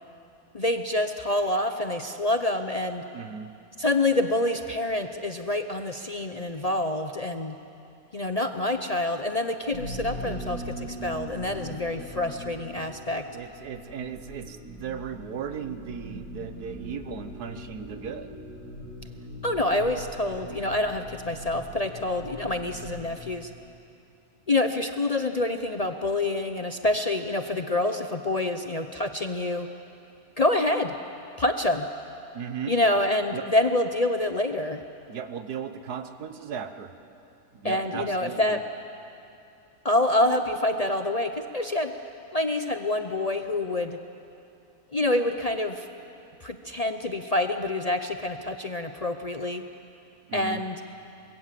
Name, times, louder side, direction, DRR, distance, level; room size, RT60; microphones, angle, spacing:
voice 1, 0.5-3.0 3.8-7.5 8.1-13.2 19.4-23.5 24.5-29.7 30.4-30.9 31.4-31.9 32.7-34.8 37.6-38.6 39.8-41.9 42.3-44.0 44.9-45.9 46.4-49.6 50.3-50.8, left 2 dB, 35° left, 6 dB, 0.6 m, -27 dB
voice 2, 3.1-3.5 13.3-18.4 32.3-32.8 33.3-33.5 35.1-36.9 37.5-38.6 50.3-50.6, right 7 dB, 85° right, 9 dB, 1.6 m, -36 dB
sound 1, 9.7-23.1, equal, 70° right, 3.8 m, -41 dB
25.0 x 21.5 x 7.6 m, 2.7 s
omnidirectional pair, 1.6 m